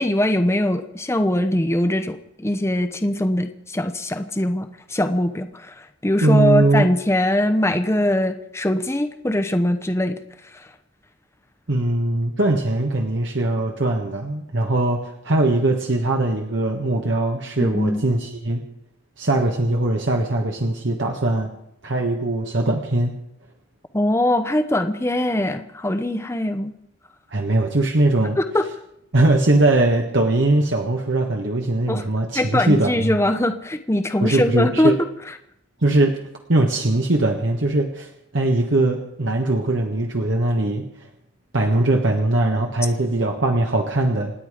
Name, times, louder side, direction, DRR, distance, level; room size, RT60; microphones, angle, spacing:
voice 1, 0.0-10.2 10.5-10.7 17.6-18.0 23.9-26.7 28.4-28.6 31.9-32.0 32.3-34.9, left 1 dB, 15° left, 8 dB, 0.9 m, -22 dB
voice 2, 6.2-6.9 11.7-18.6 19.2-21.5 21.8-23.1 27.3-28.4 29.1-33.2 34.2-35.0 35.8-36.2 36.5-40.8 41.5-44.3, right 2 dB, 70° right, 2 dB, 1.5 m, -20 dB
28.0 x 9.4 x 5.0 m, 0.76 s
head